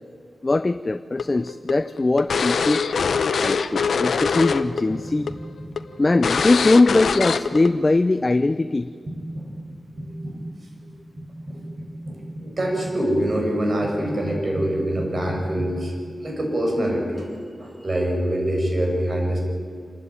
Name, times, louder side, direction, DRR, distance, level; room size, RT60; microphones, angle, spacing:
voice 1, 0.4-2.8 3.4-5.3 6.0-8.9, left 2 dB, 35° left, 11 dB, 0.6 m, -20 dB
sound 1, 1.2-4.8 5.1-5.3 5.8-5.9 6.2-7.7, left 5 dB, 80° left, 0.8 m, -23 dB
voice 2, 9.1-9.6 10.0-10.4 10.8-15.9 16.2-19.4, right 1 dB, 45° right, 1 dB, 6.7 m, -25 dB
27.0 x 12.5 x 9.8 m, 2.2 s
wide cardioid pair, 70°, 0 cm